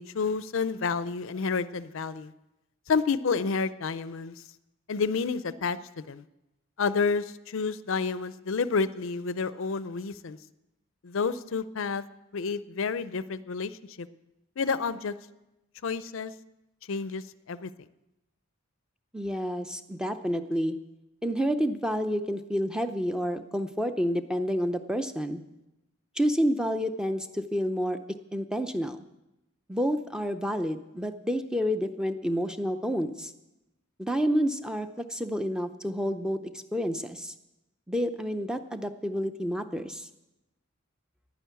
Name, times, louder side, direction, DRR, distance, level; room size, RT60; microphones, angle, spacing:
voice 1, 0.0-2.3 2.9-4.4 4.9-6.2 6.8-10.4 11.0-12.0 12.3-14.1 14.6-15.1 15.8-16.3 16.9-17.9, left 5 dB, 65° left, 15 dB, 0.5 m, -30 dB
voice 2, 19.1-20.8 21.2-25.4 26.2-28.0 28.3-29.0 29.7-33.3 34.0-37.3 37.9-40.1, equal, 5° right, 8 dB, 0.5 m, -29 dB
11.0 x 10.0 x 8.2 m, 0.95 s
head